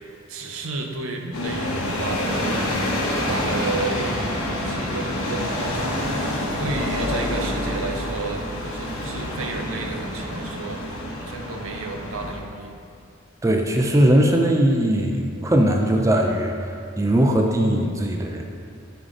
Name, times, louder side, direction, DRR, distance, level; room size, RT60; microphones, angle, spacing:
voice 1, 0.3-2.5 3.2-6.1 6.6-10.8 11.2-12.8, right 3 dB, 75° right, 3 dB, 0.6 m, -32 dB
sound 1, 1.3-12.4, left 1 dB, 85° left, 1.2 m, -27 dB
voice 2, 13.4-16.5 17.0-18.4, right 1 dB, 15° right, 2 dB, 0.4 m, -19 dB
6.9 x 4.8 x 3.6 m, 2.3 s
head